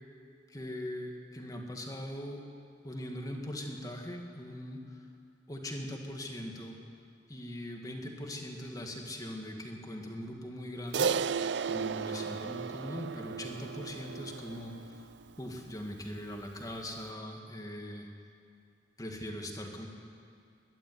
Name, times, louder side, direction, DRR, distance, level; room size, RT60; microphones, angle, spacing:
voice 1, 0.5-2.4 2.8-5.0 5.5-6.8 7.3-11.1 11.7-15.1 15.4-18.1 19.0-19.9, left 1 dB, 20° left, 2 dB, 2.2 m, -41 dB
Crash cymbal, 10.9-15.5, right 6 dB, 85° right, 0.5 m, -34 dB
21.0 x 12.5 x 9.7 m, 2.3 s
head